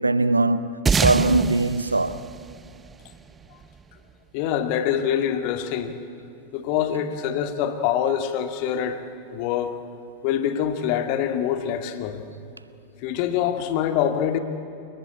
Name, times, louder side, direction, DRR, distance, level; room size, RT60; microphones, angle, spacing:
voice 1, 0.0-2.3, right 2 dB, 80° right, 0.8 m, -21 dB
sound 1, 0.9-3.6, right 5 dB, 15° right, 0.5 m, -26 dB
voice 2, 4.3-6.0 6.5-9.0 9.3-9.8 10.2-12.2 13.0-14.4, left 9 dB, 45° left, 2.0 m, -25 dB
29.5 x 19.0 x 8.7 m
figure-of-eight pair, 90°, 0 cm